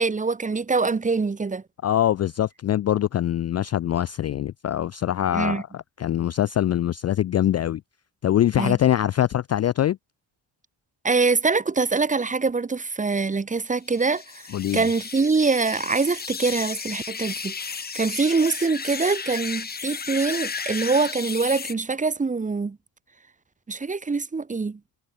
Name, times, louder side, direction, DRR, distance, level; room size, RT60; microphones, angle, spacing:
voice 1, 0.0-1.6 5.3-5.6 8.6-8.8 11.0-14.4 14.7-22.8 23.7-24.8, right 4 dB, 15° right, 1.0 m, -24 dB
voice 2, 1.8-7.8 8.2-10.0 14.5-14.9, left 11 dB, 35° left, 0.4 m, -23 dB
sound 1, 13.9-21.7, left 5 dB, 20° left, 0.9 m, -34 dB
cardioid pair, 135°, 45 cm